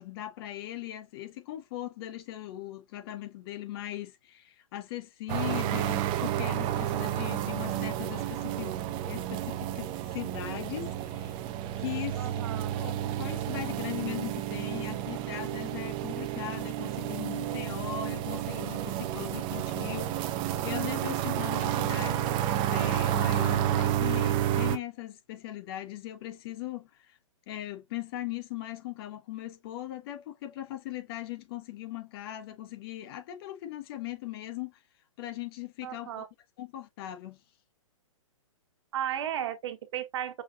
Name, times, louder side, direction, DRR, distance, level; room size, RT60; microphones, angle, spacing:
voice 1, 0.0-11.4 11.8-27.2 27.5-34.8 35.2-36.3 36.6-37.4, left 13 dB, 45° left, 1.1 m, -39 dB
sound 1, 5.3-24.8, right 12 dB, 30° right, 0.6 m, -31 dB
voice 2, 12.2-12.7 35.8-36.3 38.9-40.4, right 10 dB, 55° right, 1.0 m, -34 dB
5.6 x 2.5 x 2.6 m
hypercardioid pair, 125°, 18 cm